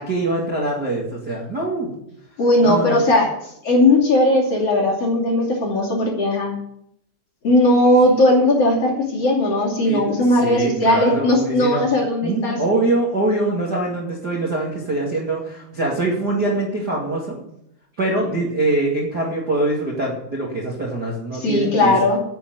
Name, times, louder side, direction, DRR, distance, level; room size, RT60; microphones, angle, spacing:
voice 1, 0.0-2.0 2.6-3.0 9.8-11.9 12.2-17.4 18.0-21.9, right 2 dB, 70° right, -4 dB, 0.9 m, -23 dB
voice 2, 2.4-3.3 3.6-6.5 7.4-12.6 21.4-22.2, left 1 dB, 40° left, -2 dB, 2.8 m, -17 dB
9.8 x 7.9 x 9.1 m, 0.77 s
omnidirectional pair, 5.7 m